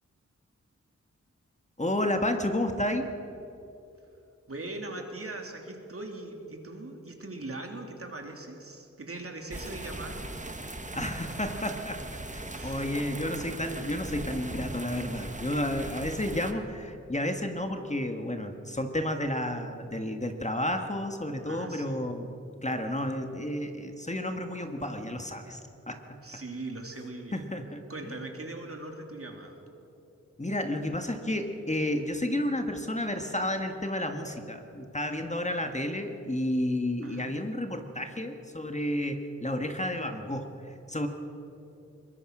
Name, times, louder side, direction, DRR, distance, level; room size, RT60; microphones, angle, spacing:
voice 1, 1.8-3.1 10.9-12.0 12.3-22.4 22.6-25.6 25.9-26.0 27.3-28.1 30.4-41.1, left 1 dB, 25° left, 5 dB, 1.7 m, -31 dB
voice 2, 4.5-10.4 12.5-12.9 21.4-22.0 26.2-27.5 27.9-29.6 37.0-37.4, right 2 dB, 50° right, 3 dB, 3.0 m, -40 dB
sound 1, 9.5-16.5, right 2 dB, 25° right, 1.6 m, -39 dB
22.5 x 20.5 x 6.1 m, 2.9 s
wide cardioid pair, 55°, 30 cm